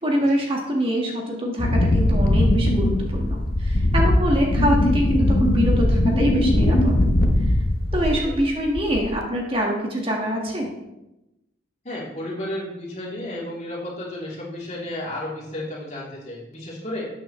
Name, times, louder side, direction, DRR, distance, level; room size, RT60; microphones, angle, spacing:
voice 1, 0.0-6.9 7.9-10.7, equal, 30° right, 0 dB, 1.6 m, -24 dB
Wind, 1.6-8.4 8.7-9.2, left 1 dB, 55° left, 0.9 m, -20 dB
voice 2, 7.9-8.4 11.8-17.1, left 1 dB, 40° left, -5 dB, 3.1 m, -33 dB
12.5 x 8.7 x 3.2 m, 0.93 s
head